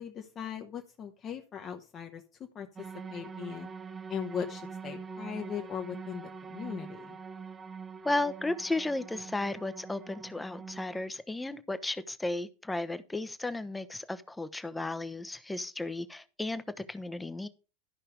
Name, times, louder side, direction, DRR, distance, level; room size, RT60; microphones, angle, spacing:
voice 1, 0.0-2.2 2.5-3.7 4.1-7.2, left 7 dB, 30° left, 1.1 m, -39 dB
sound 1, 2.8-11.0, right 5 dB, 20° right, 0.7 m, -44 dB
voice 2, 8.0-17.5, left 2 dB, 10° left, 0.9 m, -34 dB
12.5 x 5.6 x 5.1 m
figure-of-eight pair, 80°, 0 cm